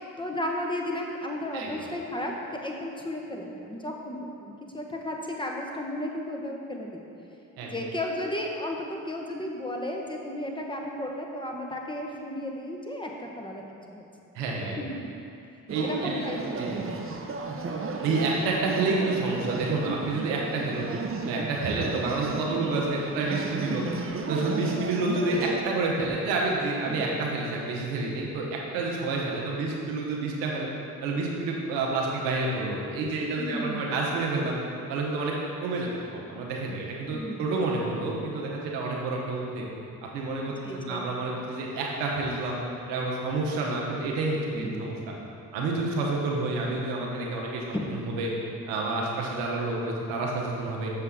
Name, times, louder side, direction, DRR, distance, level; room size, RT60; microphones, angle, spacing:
voice 1, 0.2-7.0 7.7-13.6 13.9-14.0 14.8-15.1 15.8-16.8 26.9-27.2 33.4-33.9 37.1-37.5 40.6-41.1 44.5-44.9 47.7-47.9, left 1 dB, 10° left, 0 dB, 1.2 m, -34 dB
voice 2, 14.3-14.8 15.7-16.1 16.6-16.8 18.0-20.9 21.3-23.8 24.3-30.7 31.0-34.6 34.9-35.3 35.6-39.6 40.1-42.6 42.9-45.1 45.5-48.3 48.7-50.9, right 3 dB, 85° right, -2 dB, 1.1 m, -29 dB
sound 1, 15.7-25.6, right 4 dB, 35° right, 0.8 m, -33 dB
6.9 x 6.7 x 3.7 m, 2.6 s
hypercardioid pair, 45°, 40 cm